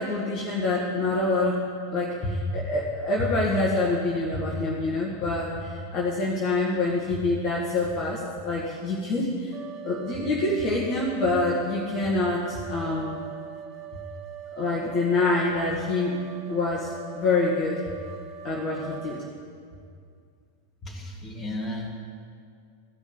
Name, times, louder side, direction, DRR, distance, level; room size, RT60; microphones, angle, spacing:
voice 1, 0.0-1.6 1.9-9.5 9.8-13.2 14.6-16.2 16.5-17.8 18.4-19.2, left 2 dB, 35° left, -5 dB, 1.7 m, -26 dB
sound 1, 9.5-19.3, right 8 dB, 30° right, 0.7 m, -42 dB
voice 2, 20.8-21.9, left 1 dB, 15° left, -3 dB, 2.4 m, -34 dB
15.0 x 5.3 x 8.7 m, 2.2 s
figure-of-eight pair, 90°, 0 cm